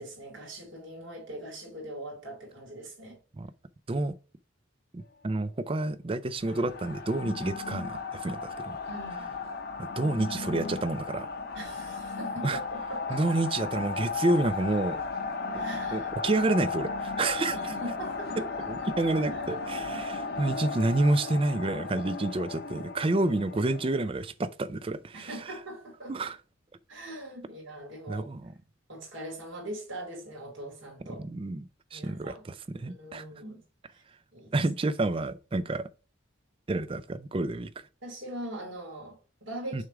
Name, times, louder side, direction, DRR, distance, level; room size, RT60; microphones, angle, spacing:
voice 1, 0.0-3.2 8.8-9.3 11.5-13.4 15.5-16.1 17.5-18.9 19.3-19.4 19.9-20.1 20.4-20.6 25.1-26.1 26.9-28.3 28.9-31.2 31.9-32.4 32.8-33.6 33.9-34.0 34.3-34.6 38.0-39.8, right 1 dB, 70° right, 2.8 m, -41 dB
voice 2, 4.9-8.8 9.8-11.3 12.4-12.6 13.1-15.0 15.5-15.6 15.9-17.7 18.7-25.3 26.1-26.4 28.1-28.5 31.2-31.6 31.9-33.2 34.5-35.9 36.7-37.7 39.7-39.8, right 2 dB, 25° right, 0.4 m, -29 dB
sound 1, 6.4-24.1, left 4 dB, 50° left, 0.8 m, -35 dB
6.3 x 3.6 x 4.7 m
head